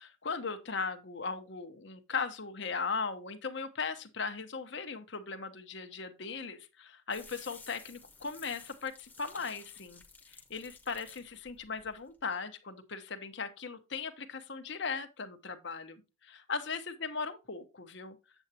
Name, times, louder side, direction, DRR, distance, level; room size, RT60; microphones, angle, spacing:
voice 1, 0.0-10.0 10.3-18.2, left 5 dB, 55° left, 1.0 m, -38 dB
sound 1, 7.1-12.3, left 4 dB, 10° left, 1.0 m, -54 dB
8.0 x 7.8 x 2.8 m
head